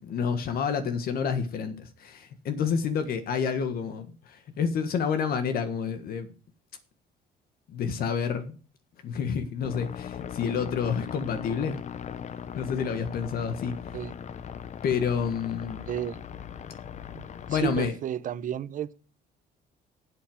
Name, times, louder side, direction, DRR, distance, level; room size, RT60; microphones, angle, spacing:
voice 1, 0.0-6.3 7.7-8.6 9.0-11.8 12.5-13.7 14.8-15.8 17.5-17.9, left 6 dB, 65° left, 1.6 m, -29 dB
sound 1, 9.6-17.9, left 8 dB, 45° left, 0.8 m, -39 dB
voice 2, 15.9-16.2 17.1-18.9, right 10 dB, 50° right, 0.9 m, -33 dB
8.4 x 8.0 x 7.8 m
cardioid pair, 110°, 17 cm